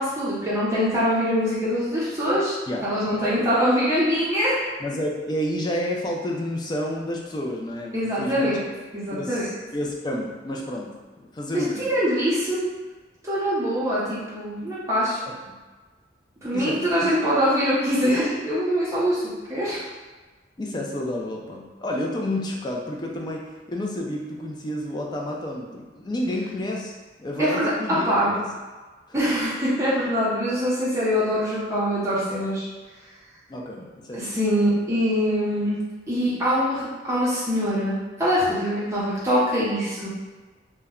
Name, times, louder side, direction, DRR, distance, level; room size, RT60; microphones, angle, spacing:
voice 1, 0.0-2.6 2.8-4.6 7.9-8.6 8.9-9.5 11.5-12.7 13.2-15.2 16.4-19.2 19.5-19.8 27.4-28.3 29.1-32.7 34.1-35.8 36.1-40.1, equal, 15° right, -9 dB, 0.7 m, -23 dB
voice 2, 2.7-3.5 4.8-8.7 9.1-11.9 16.5-17.1 20.6-23.4 23.7-26.9 27.2-28.1 28.3-28.5 29.2-29.3 33.5-34.4, left 1 dB, 25° left, -1 dB, 0.3 m, -30 dB
2.1 x 2.1 x 3.5 m, 1.3 s
head